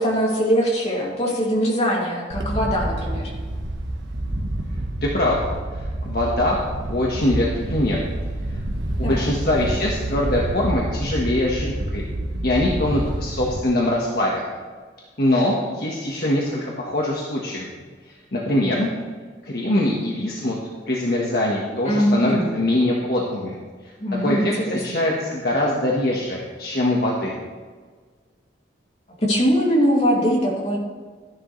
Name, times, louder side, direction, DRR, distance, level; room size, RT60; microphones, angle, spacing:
voice 1, 0.0-3.3 9.0-9.3 21.8-22.5 24.0-24.8 29.2-30.8, equal, 35° left, -4 dB, 2.6 m, -21 dB
Wind, 2.3-13.6, right 1 dB, 85° right, 1.2 m, -28 dB
voice 2, 5.0-5.4 6.0-6.6 6.9-8.0 9.0-12.1 12.4-14.4 15.2-17.7 18.3-18.9 19.4-20.6 20.9-23.6 24.2-27.3, left 1 dB, 55° left, -3 dB, 1.4 m, -22 dB
13.0 x 11.0 x 3.2 m, 1.5 s
head